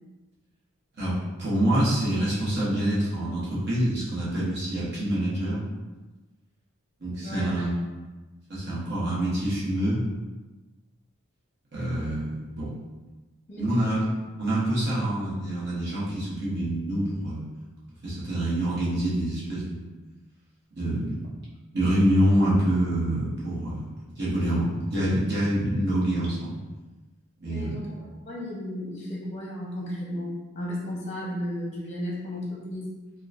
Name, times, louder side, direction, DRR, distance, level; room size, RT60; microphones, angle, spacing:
voice 1, 1.4-5.6 7.0-7.7 8.5-10.0 11.7-12.7 13.6-14.0 14.4-17.4 18.0-19.8 20.7-21.3 21.7-26.6 27.4-27.7, right 1 dB, 50° right, -8 dB, 1.0 m, -26 dB
voice 2, 13.5-13.9 27.4-33.0, left 1 dB, 30° left, -5 dB, 0.7 m, -34 dB
3.6 x 2.2 x 2.5 m, 1.2 s
head